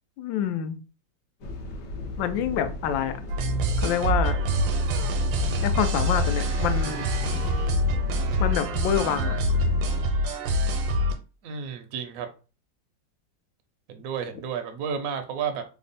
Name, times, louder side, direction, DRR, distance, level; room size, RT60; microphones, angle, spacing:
voice 1, 0.2-0.8 2.2-3.2 3.8-4.4 5.6-7.1 8.4-9.4, left 9 dB, 85° left, 1.3 m, -27 dB
sound 1, 1.4-10.0, left 1 dB, 70° left, 1.3 m, -37 dB
sound 2, 3.3-11.1, equal, 85° right, 1.3 m, -25 dB
voice 2, 11.4-12.3 13.9-15.6, right 7 dB, 70° right, 0.8 m, -31 dB
3.5 x 2.1 x 3.9 m
omnidirectional pair, 2.0 m